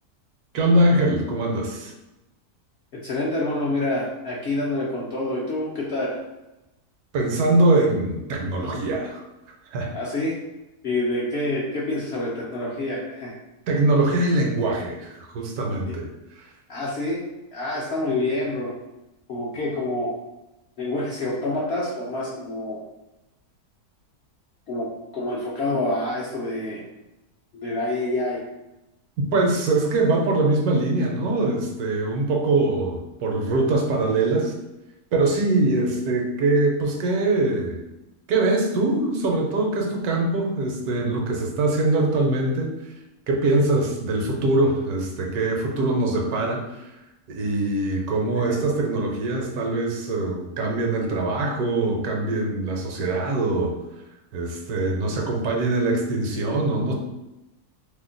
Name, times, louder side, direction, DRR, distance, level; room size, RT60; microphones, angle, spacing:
voice 1, 0.5-1.9 7.1-9.2 9.7-9.9 13.7-16.1 16.4-16.5 29.2-34.5 35.1-37.8 38.3-42.7 43.3-46.9 47.3-53.8 54.3-56.9, right 2 dB, 80° right, 1 dB, 1.1 m, -23 dB
voice 2, 3.0-6.2 9.9-10.3 10.8-13.4 15.9-16.0 16.7-17.2 17.5-18.7 19.3-20.1 20.8-22.8 24.7-26.8 27.5-28.4 48.4-48.6, left 2 dB, 60° left, -5 dB, 0.7 m, -27 dB
2.8 x 2.1 x 3.7 m, 0.98 s
omnidirectional pair, 1.6 m